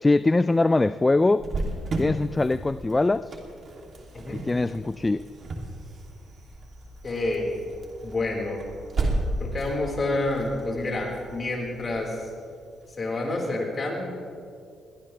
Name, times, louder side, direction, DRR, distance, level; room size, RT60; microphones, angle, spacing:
voice 1, 0.0-1.5 2.0-3.4 4.3-5.3, left 2 dB, 20° left, 14 dB, 0.3 m, -22 dB
Cricket, 1.4-12.8, right 2 dB, 50° right, 2.7 m, -34 dB
voice 2, 7.0-7.6 8.0-8.7 9.4-12.3 13.0-14.0, left 2 dB, 35° left, -1 dB, 4.4 m, -28 dB
22.0 x 17.0 x 3.3 m, 2.3 s
cardioid pair, 90°, 0 cm